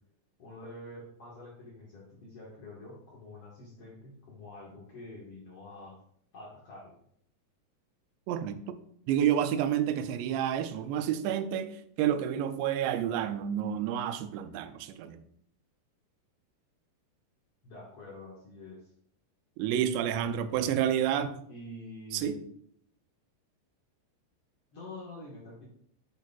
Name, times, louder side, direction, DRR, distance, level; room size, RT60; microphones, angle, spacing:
voice 1, 0.4-6.0 6.3-7.0 17.6-18.9 20.5-20.8 21.4-22.5 24.7-25.7, left 2 dB, 65° left, 1.4 m, -47 dB
voice 2, 8.3-8.8 9.1-15.2 19.6-21.4 22.1-22.4, right 10 dB, 90° right, 2.8 m, -29 dB
9.0 x 6.6 x 2.3 m
omnidirectional pair, 4.9 m